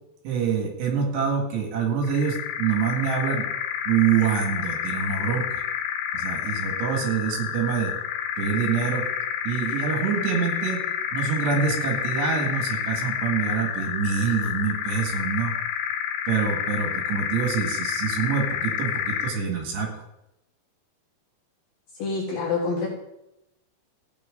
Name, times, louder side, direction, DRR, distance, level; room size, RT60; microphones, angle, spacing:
voice 1, 0.2-3.4 3.9-5.6 6.1-7.9 8.4-9.1 9.4-10.8 11.1-15.5 16.3-19.9, right 6 dB, 75° right, 1 dB, 4.2 m, -26 dB
sound 1, 2.0-19.5, left 9 dB, 85° left, 3.2 m, -29 dB
voice 2, 22.0-22.9, left 4 dB, 65° left, -3 dB, 3.1 m, -26 dB
15.5 x 9.1 x 3.9 m, 0.87 s
omnidirectional pair, 5.0 m